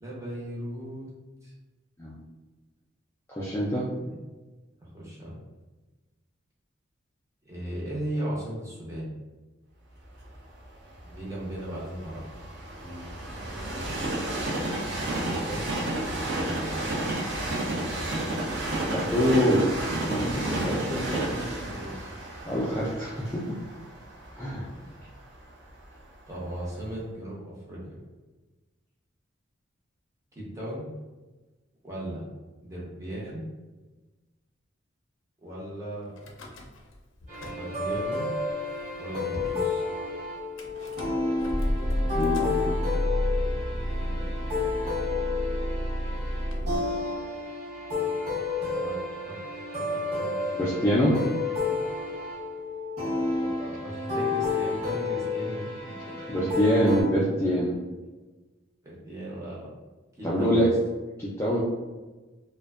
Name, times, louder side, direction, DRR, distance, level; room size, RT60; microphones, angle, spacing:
voice 1, 0.0-1.1 1.4-1.5 4.0-4.1 4.8-5.4 7.4-9.1 11.1-12.2 15.2-15.9 16.4-17.2 17.6-18.4 21.0-21.2 21.6-22.1 24.2-24.3 24.7-24.8 26.3-28.0 30.3-30.8 31.8-32.2 32.6-33.4 35.4-36.1 37.5-38.3 39.0-39.8 44.0-44.7 48.6-49.0 49.3-49.4 49.8-50.4 51.0-51.3 51.6-51.8 53.4-55.7 56.1-56.2 58.8-59.7 60.2-60.7, right 1 dB, 15° right, -7 dB, 0.7 m, -37 dB
voice 2, 3.3-3.9 12.8-13.1 17.7-17.9 18.9-19.6 20.1-21.4 22.4-23.6 24.4-24.7 42.0-43.0 50.6-51.2 56.3-57.7 60.2-60.7 61.2-61.6, equal, 15° left, -7 dB, 0.3 m, -25 dB
Train, 10.2-26.2 26.7-26.8, right 1 dB, 60° right, 0.5 m, -32 dB
Car / Engine starting / Idling, 36.2-37.0 37.2-38.0 38.7-38.8 38.9-39.0 39.3-39.6 40.6-46.8, equal, 80° left, 0.4 m, -30 dB
sound 1, 37.3-57.0, left 3 dB, 35° right, 1.0 m, -31 dB
2.5 x 2.1 x 2.3 m, 1.2 s
head